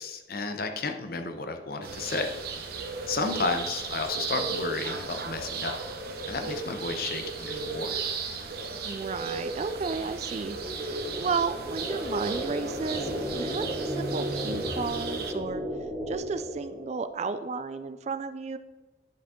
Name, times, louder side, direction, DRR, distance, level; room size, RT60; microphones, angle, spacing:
voice 1, 0.0-2.3 3.1-5.8 6.3-8.0, left 3 dB, 50° left, 6 dB, 0.7 m, -32 dB
sound 1, 1.8-15.3, right 4 dB, 55° right, 0.8 m, -35 dB
sound 2, 8.5-17.2, equal, 10° right, 2.7 m, -35 dB
voice 2, 8.8-15.6 16.1-18.6, right 4 dB, 35° right, 11 dB, 0.3 m, -33 dB
10.5 x 5.1 x 3.6 m, 1.2 s
head